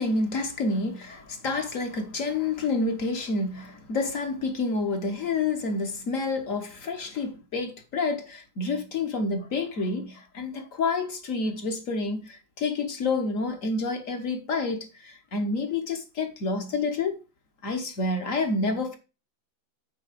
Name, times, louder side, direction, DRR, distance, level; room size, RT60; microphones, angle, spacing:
voice 1, 0.0-17.2 17.6-19.0, left 3 dB, 45° left, 1.2 m, -29 dB
8.5 x 4.0 x 4.9 m
omnidirectional pair, 2.3 m